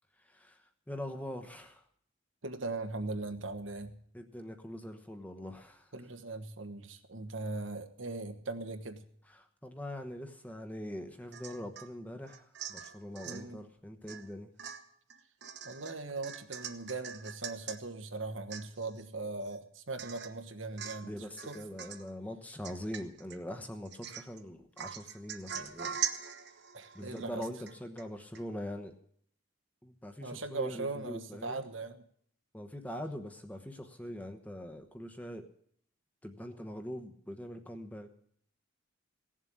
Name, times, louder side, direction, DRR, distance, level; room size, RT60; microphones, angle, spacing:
voice 1, 0.2-1.8 4.1-5.9 9.3-14.5 21.0-26.0 26.9-29.0 29.8-31.6 32.5-35.5 36.2-38.2, equal, 5° left, 6 dB, 1.0 m, -43 dB
voice 2, 2.4-4.0 5.9-9.0 13.2-13.6 15.6-21.1 21.5-21.6 26.7-27.4 30.2-32.0, right 3 dB, 70° right, 7 dB, 1.3 m, -39 dB
Domestic sounds home sounds / Chink clink / Drip, 11.3-11.9 12.3-13.4 14.1-14.3 14.6-17.8 18.2-18.3 18.5-19.0 19.4-19.5 20.0-20.4 20.8-21.1 21.4-22.1 22.6-23.4 23.8-24.4 24.8-28.1 28.3-28.4, right 8 dB, 55° right, 1.0 m, -42 dB
17.5 x 7.4 x 8.6 m, 0.65 s
head